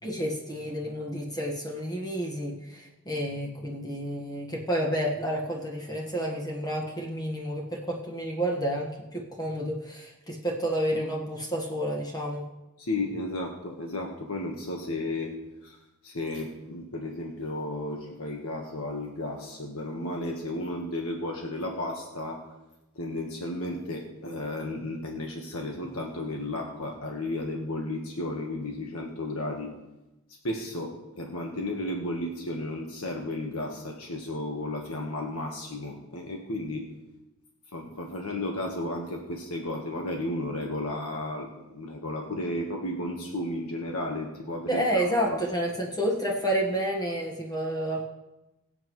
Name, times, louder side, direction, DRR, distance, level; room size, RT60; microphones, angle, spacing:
voice 1, 0.0-12.4 44.7-48.1, equal, 15° left, -1 dB, 1.5 m, -30 dB
voice 2, 12.8-15.3 15.6-15.8 16.0-22.4 22.9-29.7 30.4-36.9 37.7-45.0 45.3-45.4, left 1 dB, 70° left, 1 dB, 1.4 m, -33 dB
22.5 x 8.1 x 3.2 m, 1.0 s
head